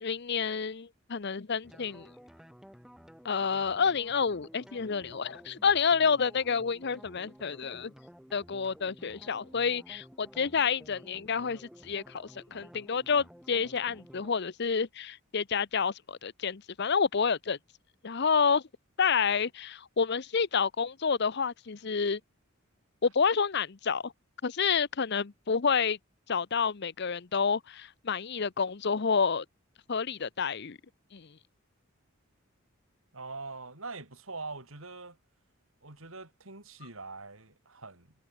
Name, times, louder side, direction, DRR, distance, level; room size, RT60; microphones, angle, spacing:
voice 1, 0.0-2.1 3.2-7.9 8.3-17.6 18.0-18.6 19.0-22.2 23.0-24.1 24.4-26.0 26.3-29.4 29.9-30.8 31.1-31.3, left 6 dB, 55° left, 0.7 m, -29 dB
sound 1, 1.6-14.3, equal, ahead, 3.8 m, -53 dB
voice 2, 33.1-35.2 35.8-38.1, right 3 dB, 75° right, 4.3 m, -43 dB
head